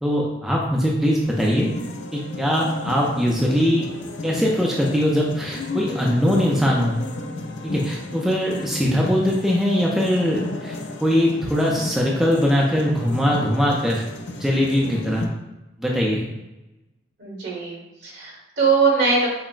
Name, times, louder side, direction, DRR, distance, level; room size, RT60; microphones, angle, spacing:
voice 1, 0.0-1.7 2.1-3.9 4.2-7.0 7.6-14.0 14.4-15.3 15.8-16.2, equal, ahead, -3 dB, 0.4 m, -21 dB
sound 1, 1.2-15.3, left 2 dB, 75° left, 0.4 m, -33 dB
voice 2, 17.2-19.3, right 4 dB, 75° right, -3 dB, 1.4 m, -21 dB
5.7 x 2.0 x 2.4 m, 1.0 s
head